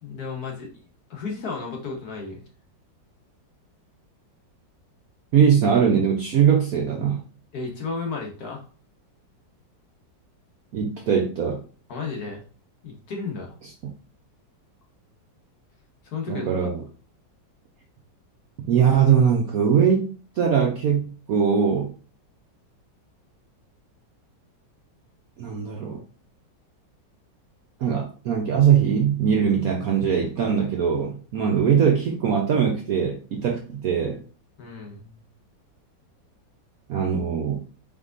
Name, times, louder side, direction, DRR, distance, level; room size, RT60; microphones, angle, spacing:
voice 1, 0.0-0.8 1.1-2.4 7.5-8.7 11.9-12.4 12.8-13.6 16.0-16.7 34.6-35.2, left 4 dB, 60° left, 0 dB, 1.4 m, -33 dB
voice 2, 5.3-7.2 10.7-11.6 16.3-16.8 18.7-21.0 21.3-21.9 25.4-26.0 27.8-34.2 36.9-37.6, right 7 dB, 65° right, 0 dB, 0.9 m, -21 dB
4.6 x 3.6 x 2.5 m, 0.37 s
omnidirectional pair, 2.1 m